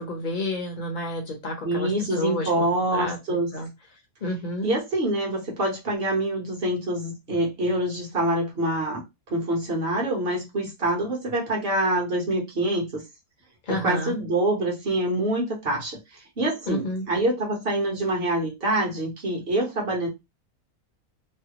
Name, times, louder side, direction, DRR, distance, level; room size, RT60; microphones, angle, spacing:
voice 1, 0.0-2.7 2.9-3.7 4.2-4.7 13.7-14.2 16.7-17.0, left 1 dB, 40° left, 2 dB, 0.9 m, -30 dB
voice 2, 1.6-3.5 4.6-13.0 13.7-20.1, right 1 dB, 45° right, -1 dB, 1.3 m, -26 dB
3.2 x 2.1 x 2.9 m, 0.22 s
omnidirectional pair, 1.5 m